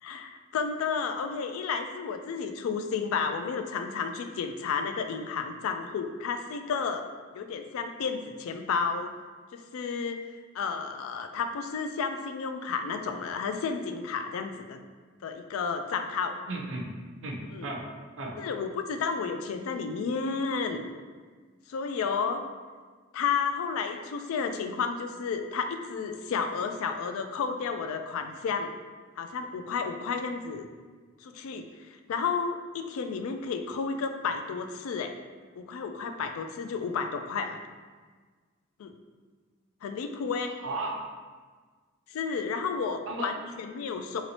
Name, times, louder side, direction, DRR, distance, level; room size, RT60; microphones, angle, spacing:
voice 1, 0.0-7.1 7.3-9.1 9.5-10.2 10.5-14.8 15.2-16.4 17.5-17.7 18.4-20.8 21.7-22.4 23.1-28.7 29.2-30.7 31.2-31.7 32.1-35.1 35.6-37.6 38.8-38.9 39.8-40.6 42.1-44.2, left 5 dB, 85° left, 6 dB, 0.3 m, -32 dB
voice 2, 16.5-16.9 17.2-17.9 18.2-18.4 40.5-41.0 43.1-43.3, right 2 dB, 65° right, 0 dB, 0.5 m, -35 dB
3.0 x 2.9 x 2.7 m, 1.5 s
head